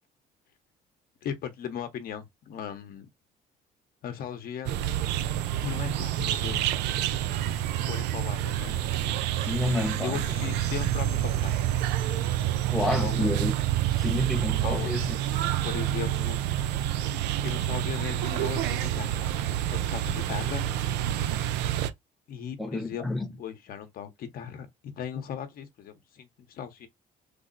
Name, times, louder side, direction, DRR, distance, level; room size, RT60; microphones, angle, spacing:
voice 1, 1.2-3.1 4.0-4.7 5.6-6.7 7.8-8.9 10.0-11.5 12.8-13.3 14.6-14.9 15.6-16.4 17.4-19.3 19.6-20.7 22.3-23.0 23.4-26.9, left 8 dB, 60° left, 0.8 m, -37 dB
sound 1, 4.7-21.9, right 12 dB, 90° right, 0.4 m, -28 dB
voice 2, 9.5-10.2 12.7-13.5 14.0-15.2 22.6-23.4, left 2 dB, ahead, 0.7 m, -29 dB
3.4 x 2.0 x 3.8 m
cardioid pair, 110°, 17 cm